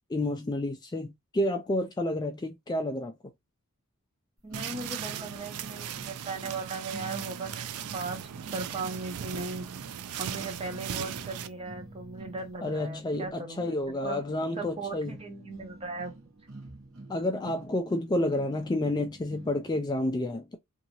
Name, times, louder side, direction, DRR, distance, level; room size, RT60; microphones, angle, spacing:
voice 1, 0.1-3.1 12.6-15.1 17.1-20.6, left 1 dB, 20° left, 0.3 m, -30 dB
voice 2, 4.4-8.2 8.5-9.7 10.2-14.2 14.6-16.1, right 3 dB, 25° right, 0.8 m, -38 dB
sound 1, 4.5-19.9, right 2 dB, 65° right, 1.0 m, -49 dB
sound 2, 4.5-11.5, right 9 dB, 85° right, 0.4 m, -38 dB
2.7 x 2.6 x 2.8 m
head